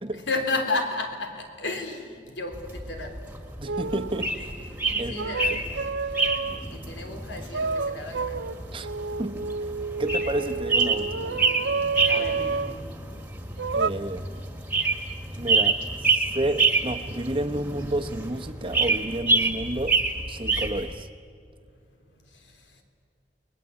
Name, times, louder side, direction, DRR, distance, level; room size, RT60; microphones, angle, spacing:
voice 1, 0.0-3.2 4.9-5.8 6.5-8.4 12.0-12.9 22.3-22.6, left 3 dB, 85° left, 3.6 m, -33 dB
sound 1, 2.5-20.9, right 3 dB, 10° right, 1.9 m, -28 dB
voice 2, 3.6-4.5 5.0-5.1 5.5-5.6 8.7-8.9 9.2-9.5 10.0-11.5 13.7-14.3 15.4-20.0 20.3-21.1, right 1 dB, 30° right, 1.1 m, -31 dB
sound 2, 3.7-4.3 5.1-6.7 7.5-12.8 13.6-13.9, right 4 dB, 85° right, 0.7 m, -29 dB
29.5 x 21.0 x 8.5 m
head